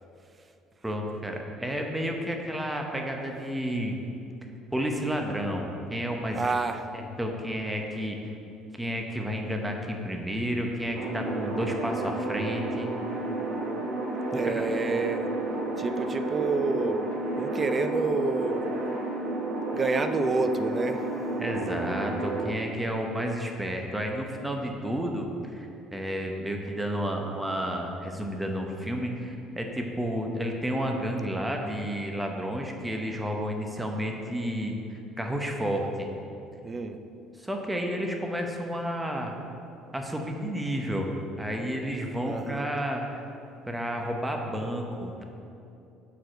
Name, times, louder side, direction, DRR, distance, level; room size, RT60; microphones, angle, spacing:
voice 1, 0.8-4.0 4.7-6.5 6.9-8.2 8.8-12.9 14.3-14.6 21.4-36.1 37.4-39.4 39.9-41.1 41.4-43.2 43.7-45.2, equal, 10° right, 2 dB, 0.8 m, -31 dB
voice 2, 6.4-6.9 14.3-15.3 15.8-17.0 17.4-18.7 19.7-21.0 36.6-37.0 42.2-42.7, right 3 dB, 25° right, 9 dB, 0.5 m, -28 dB
sound 1, 10.9-22.5, right 2 dB, 55° right, 1.2 m, -31 dB
6.8 x 4.8 x 6.2 m, 2.7 s
cardioid pair, 120°, 0 cm